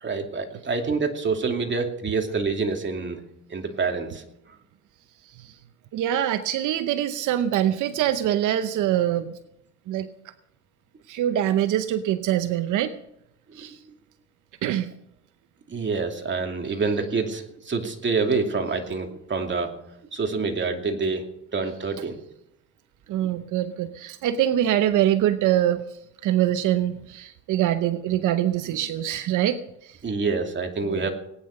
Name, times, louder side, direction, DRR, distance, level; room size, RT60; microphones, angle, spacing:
voice 1, 0.0-3.2 3.5-4.2 13.6-13.8 15.7-19.7 20.1-21.3 21.5-22.2 30.0-31.1, right 4 dB, 40° right, 4 dB, 2.6 m, -27 dB
voice 2, 5.2-5.5 5.9-9.4 9.9-10.1 11.1-12.9 13.5-13.8 14.6-14.9 23.1-30.0 30.8-31.1, right 11 dB, 85° right, 11 dB, 0.8 m, -24 dB
19.0 x 9.7 x 6.5 m, 0.79 s
cardioid pair, 90°, 30 cm